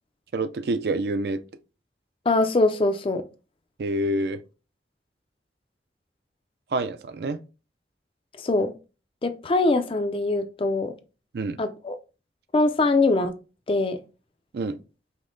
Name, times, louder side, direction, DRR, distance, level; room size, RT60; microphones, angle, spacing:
voice 1, 0.3-1.4 3.8-4.4 6.7-7.4 11.3-11.6 14.5-14.8, right 2 dB, 60° right, 0.4 m, -27 dB
voice 2, 2.3-3.2 8.4-8.7 9.2-10.9 11.6-12.0 12.5-13.3 13.7-14.0, left 2 dB, 30° left, 0.4 m, -22 dB
5.2 x 2.1 x 3.7 m
head